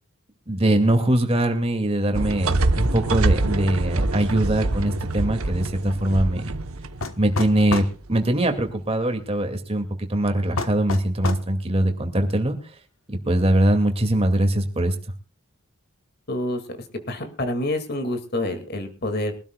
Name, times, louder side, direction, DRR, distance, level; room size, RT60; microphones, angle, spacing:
voice 1, 0.5-6.5 7.2-12.6 13.1-14.9, right 1 dB, 25° right, 5 dB, 2.2 m, -22 dB
sound 1, 2.1-8.1, right 2 dB, 80° right, 1.0 m, -25 dB
sound 2, 7.0-8.0 10.6-11.5, left 3 dB, 70° left, 1.1 m, -28 dB
voice 2, 16.3-16.6 17.1-19.3, left 1 dB, 45° left, 7 dB, 2.2 m, -27 dB
23.0 x 12.5 x 2.3 m, 0.39 s
head